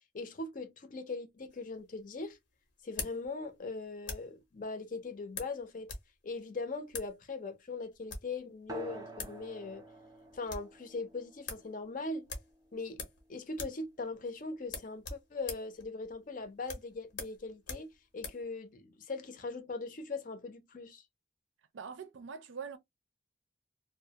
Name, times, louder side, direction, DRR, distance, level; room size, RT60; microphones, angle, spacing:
voice 1, 0.1-2.4 2.8-5.9 6.2-9.8 10.3-12.3 12.7-13.0 13.3-17.9 18.1-21.0, left 3 dB, 45° left, 0.5 m, -40 dB
sound 1, 1.5-4.4 5.3-6.1 6.3-6.4 6.9-7.1 7.9-8.4 8.9-9.0 9.2-9.4 9.7-9.8 10.1-10.7 11.1-11.2 11.5-11.7 12.3-13.3 13.5-13.9 14.1-14.2 14.6-18.5, left 4 dB, 85° left, 0.9 m, -43 dB
sound 2, 8.7-13.7, right 2 dB, 20° right, 0.4 m, -50 dB
voice 2, 21.7-22.8, right 6 dB, 90° right, 0.5 m, -43 dB
2.4 x 2.0 x 2.8 m
head